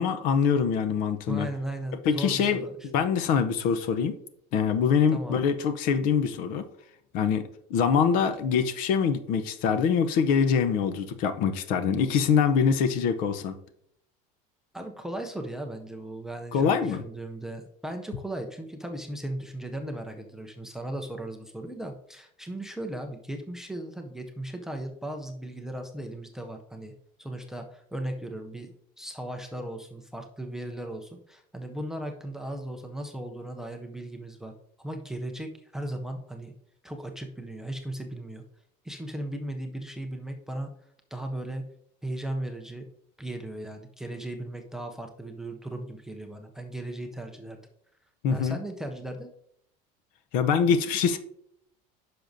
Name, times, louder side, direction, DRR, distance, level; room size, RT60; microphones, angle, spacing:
voice 1, 0.0-1.5 2.0-2.6 2.9-4.2 4.5-6.7 7.1-13.6 16.5-17.0 48.2-48.6 50.3-51.2, left 6 dB, 55° left, 10 dB, 0.7 m, -24 dB
voice 2, 1.3-2.7 5.1-5.4 14.7-26.9 27.2-34.5 34.8-36.5 36.8-38.4 38.8-40.7 41.1-41.7 42.0-42.8 43.2-47.6 48.3-49.3, right 1 dB, 5° right, 4 dB, 0.5 m, -37 dB
10.0 x 6.0 x 2.6 m, 0.70 s
cardioid pair, 175°, 18 cm